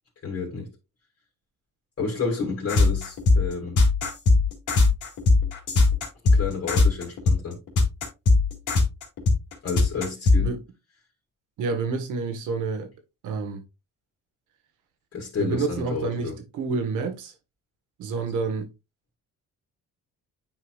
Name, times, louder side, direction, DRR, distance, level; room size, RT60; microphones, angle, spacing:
voice 1, 0.2-0.7 2.0-3.8 6.3-7.6 9.6-10.5 15.1-16.4, left 5 dB, 50° left, 2.3 m, -30 dB
sound 1, 2.7-10.4, left 3 dB, 80° left, 2.4 m, -19 dB
voice 2, 11.6-12.9 13.2-13.6 15.4-17.3 18.0-18.7, right 4 dB, 85° right, 1.4 m, -28 dB
9.1 x 4.7 x 2.4 m
cardioid pair, 90°, 30 cm